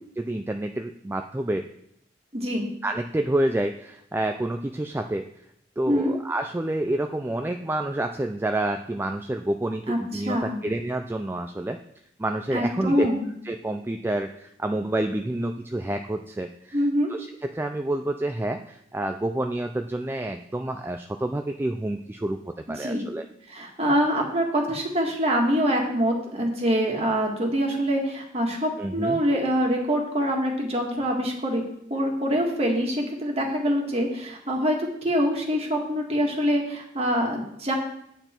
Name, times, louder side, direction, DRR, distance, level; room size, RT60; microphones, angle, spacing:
voice 1, 0.2-1.7 2.8-5.3 5.8-11.8 12.2-13.1 13.4-16.8 17.1-23.2 28.8-29.2, right 1 dB, 10° right, 5 dB, 0.3 m, -28 dB
voice 2, 2.3-2.7 5.9-6.1 9.9-10.6 12.5-13.3 16.7-17.1 22.8-23.0 23.5-31.6 31.9-37.7, equal, 35° right, 1 dB, 1.8 m, -25 dB
9.0 x 8.0 x 4.4 m, 0.73 s
head